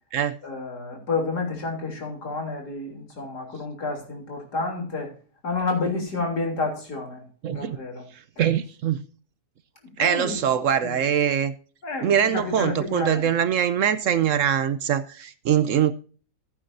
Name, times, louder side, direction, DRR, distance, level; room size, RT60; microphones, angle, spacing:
voice 1, 0.4-5.1 5.4-7.2 7.5-8.1 10.0-10.4 10.8-11.0 11.8-13.3, left 3 dB, 90° left, 3.8 m, -30 dB
voice 2, 7.4-7.8 8.4-9.0 10.0-11.5 12.0-15.9, right 9 dB, 65° right, 0.9 m, -23 dB
15.0 x 8.6 x 2.6 m
omnidirectional pair, 1.7 m